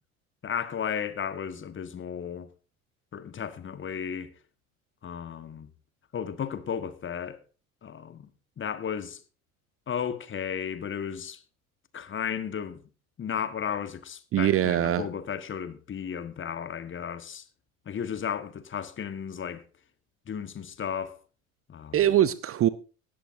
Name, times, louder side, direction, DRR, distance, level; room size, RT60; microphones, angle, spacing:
voice 1, 0.4-2.5 3.1-4.3 5.0-5.7 6.1-7.4 7.8-8.3 8.6-9.2 9.9-11.4 11.9-12.8 13.2-17.4 17.8-19.6 20.3-21.2 21.7-22.0, left 7 dB, 30° left, 1.5 m, -34 dB
voice 2, 14.3-15.1 21.9-22.7, right 11 dB, 30° right, 0.7 m, -22 dB
18.0 x 13.0 x 2.6 m
figure-of-eight pair, 65°, 42 cm